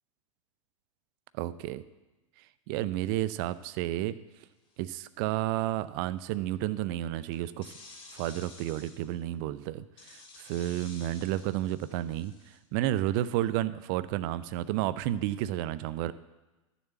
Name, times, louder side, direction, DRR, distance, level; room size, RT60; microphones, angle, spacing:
voice 1, 1.3-1.8 2.7-4.2 4.8-7.7 8.1-12.3 12.7-16.1, right 13 dB, 40° right, 15 dB, 0.6 m, -31 dB
sound 1, 4.7-5.0 7.3-9.0 10.0-12.6, left 3 dB, 30° left, 3.6 m, -51 dB
12.0 x 7.1 x 8.2 m, 1.1 s
figure-of-eight pair, 90°, 17 cm